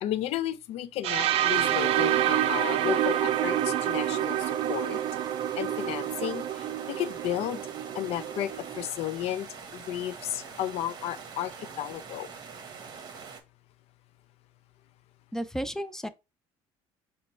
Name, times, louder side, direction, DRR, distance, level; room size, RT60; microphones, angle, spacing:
voice 1, 0.0-5.0 5.6-7.6 7.9-12.3, left 12 dB, 65° left, 0.5 m, -33 dB
sound 1, 1.0-8.9, right 12 dB, 60° right, 0.4 m, -28 dB
sound 2, 1.5-13.4, right 5 dB, 40° right, 1.1 m, -44 dB
voice 2, 15.3-16.1, equal, 5° left, 0.5 m, -33 dB
5.1 x 2.2 x 4.4 m
cardioid pair, 105°, 11 cm